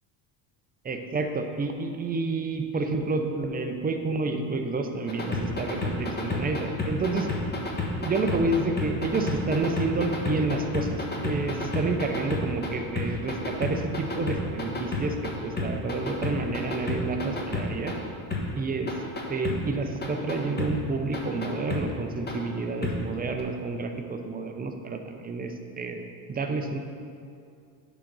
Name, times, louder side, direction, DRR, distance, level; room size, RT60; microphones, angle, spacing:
voice 1, 0.8-7.3 8.0-17.9 18.5-18.9 19.3-26.0 26.3-26.8, right 3 dB, 20° right, 5 dB, 0.5 m, -29 dB
sound 1, 5.1-12.7 13.0-15.3 15.6-17.9 18.3-18.4 18.9-19.6 20.0-20.7 21.1-21.8 22.3-22.4 22.8-22.9 23.4-23.5, left 3 dB, 20° left, 1.2 m, -30 dB
8.4 x 4.0 x 6.0 m, 2.4 s
supercardioid pair, 110°, 50 cm